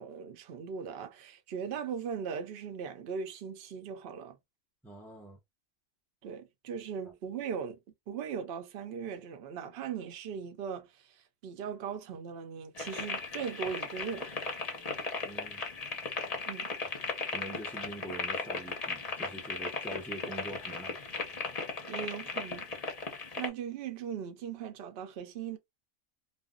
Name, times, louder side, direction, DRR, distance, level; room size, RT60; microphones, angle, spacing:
voice 1, 0.0-4.4 6.2-7.8 8.1-14.3 16.5-16.7 21.9-22.7 23.4-25.6, right 7 dB, 55° right, 0.8 m, -39 dB
voice 2, 4.8-5.4 15.2-15.6 17.3-21.0, right 1 dB, 5° left, 0.3 m, -44 dB
sound 1, 12.8-23.5, left 4 dB, 35° left, 0.7 m, -37 dB
2.5 x 2.1 x 3.6 m
omnidirectional pair, 1.4 m